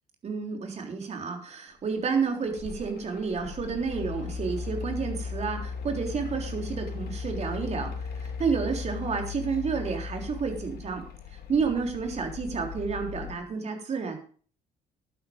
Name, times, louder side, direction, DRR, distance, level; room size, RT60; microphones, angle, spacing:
voice 1, 0.2-11.0 11.5-14.2, right 5 dB, 40° right, 4 dB, 3.5 m, -30 dB
Mechanical fan, 2.1-13.4, left 6 dB, 65° left, 2.6 m, -37 dB
11.5 x 9.9 x 5.2 m, 0.43 s
cardioid pair, 110°, 17 cm